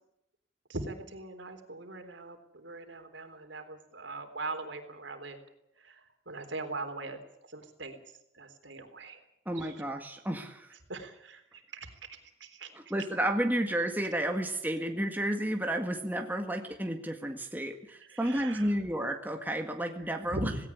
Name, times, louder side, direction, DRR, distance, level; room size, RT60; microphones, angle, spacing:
voice 1, 0.7-5.4 5.8-7.2 7.5-8.0 8.3-9.2 9.6-9.9 10.9-12.7 18.0-18.7 20.3-20.6, right 2 dB, 75° right, 7 dB, 3.7 m, -41 dB
voice 2, 9.5-10.7 12.7-20.5, right 1 dB, 10° right, 4 dB, 1.7 m, -32 dB
18.0 x 17.5 x 9.8 m, 0.78 s
head